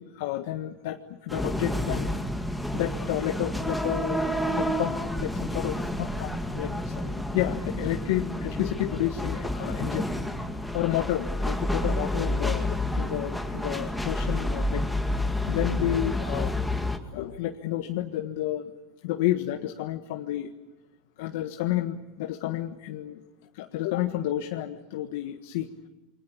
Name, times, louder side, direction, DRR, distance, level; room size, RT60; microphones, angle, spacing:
voice 1, 0.0-2.1 2.7-10.1 10.7-14.9 15.5-16.8 17.1-18.7 19.0-20.5 21.2-23.2 23.5-25.7, left 13 dB, 75° left, 6 dB, 1.5 m, -31 dB
sound 1, 1.3-17.0, left 1 dB, ahead, 2.2 m, -29 dB
28.5 x 24.5 x 8.6 m, 1.0 s
supercardioid pair, 145°, 0 cm